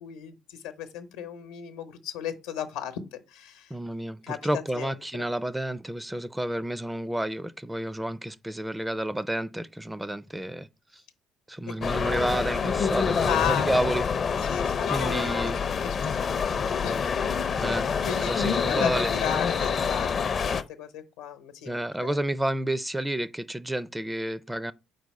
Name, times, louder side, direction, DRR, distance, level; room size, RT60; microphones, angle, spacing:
voice 1, 0.0-3.7 4.2-5.0 11.7-11.8 13.3-13.7 14.4-17.2 17.9-22.2, left 9 dB, 85° left, 0.8 m, -35 dB
voice 2, 3.7-10.7 10.9-11.0 11.5-14.0 14.9-15.6 17.6-17.9 18.3-19.1 21.7-24.7, right 1 dB, 10° right, 0.4 m, -30 dB
sound 1, 11.8-20.6, left 6 dB, 45° left, 0.5 m, -27 dB
4.5 x 4.0 x 5.3 m
hypercardioid pair, 60°, 0 cm